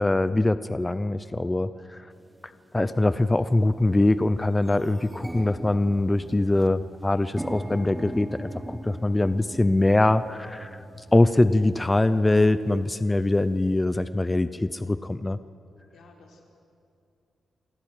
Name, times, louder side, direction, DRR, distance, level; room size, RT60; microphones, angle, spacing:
voice 1, 0.0-2.0 2.7-10.8 11.1-15.4, left 2 dB, 15° left, 13 dB, 0.6 m, -23 dB
sound 1, 2.3-2.4 3.1-3.4 3.8-3.9 4.1-13.8, right 1 dB, 10° right, 1.0 m, -40 dB
voice 2, 15.9-16.5, left 3 dB, 85° left, 0 dB, 4.0 m, -54 dB
27.5 x 13.0 x 9.1 m, 2.5 s
wide cardioid pair, 120°, 0 cm